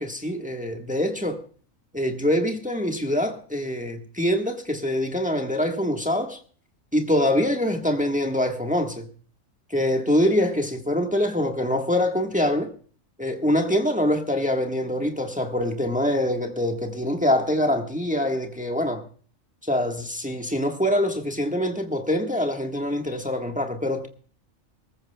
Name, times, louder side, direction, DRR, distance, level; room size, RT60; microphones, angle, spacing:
voice 1, 0.0-1.4 1.9-6.4 6.9-9.1 9.7-12.7 13.2-19.0 19.6-24.1, left 1 dB, 5° right, 1.3 m, -24 dB
24.0 x 14.5 x 2.2 m
omnidirectional pair, 1.4 m